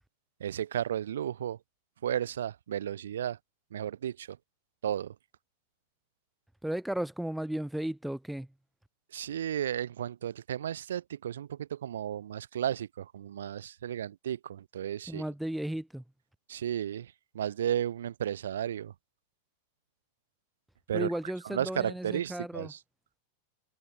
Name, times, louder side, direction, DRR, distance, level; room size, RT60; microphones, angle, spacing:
voice 1, 0.4-1.6 2.0-3.4 3.7-4.4 4.8-5.1 9.1-15.2 16.5-18.9 20.9-21.1 21.4-22.8, right 10 dB, 65° right, 6.5 m, -33 dB
voice 2, 6.6-8.5 15.1-16.0 20.9-22.7, right 1 dB, ahead, 3.0 m, -34 dB
figure-of-eight pair, 90°, 0 cm